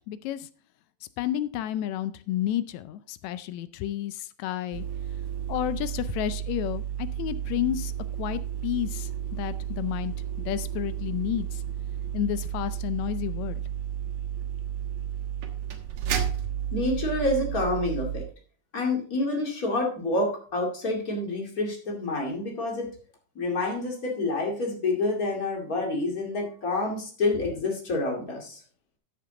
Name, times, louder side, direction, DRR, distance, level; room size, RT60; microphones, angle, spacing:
voice 1, 0.1-0.5 1.2-4.8 5.5-7.9 8.2-10.1 10.4-11.6 12.1-13.6, left 12 dB, 80° left, 14 dB, 1.8 m, -31 dB
sound 1, 4.7-18.3, right 10 dB, 60° right, 2.3 m, -32 dB
voice 2, 16.7-18.2 18.7-22.9 23.4-28.6, left 2 dB, 30° left, 0 dB, 2.5 m, -28 dB
13.0 x 6.7 x 3.8 m, 0.43 s
omnidirectional pair, 3.5 m